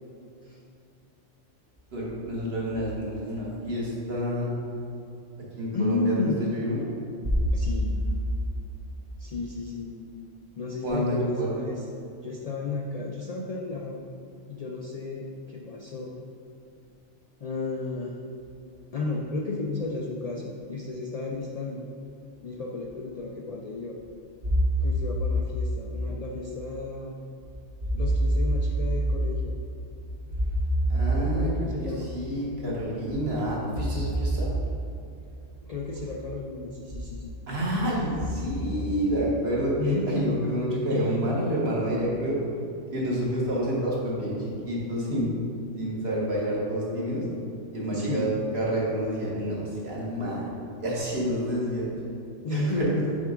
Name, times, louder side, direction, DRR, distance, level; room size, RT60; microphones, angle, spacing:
voice 1, 1.9-4.5 5.6-6.9 7.2-7.3 10.8-11.5 24.4-24.6 27.8-28.0 30.9-34.5 37.5-42.4 42.9-45.3 45.7-47.2 47.7-50.5 50.8-51.9 52.5-53.0, right 1 dB, 55° right, -5 dB, 1.6 m, -28 dB
voice 2, 5.7-6.4 7.5-8.0 9.2-9.9 10.6-11.9 12.2-14.0 14.5-16.2 17.4-18.1 18.9-21.8 22.4-24.0 24.8-27.1 27.9-29.6 31.1-32.1 35.6-37.3 39.8-40.4 40.9-41.2 47.9-48.3 52.4-53.1, left 3 dB, 90° left, -1 dB, 0.3 m, -32 dB
6.0 x 3.6 x 5.0 m, 2.6 s
omnidirectional pair, 1.2 m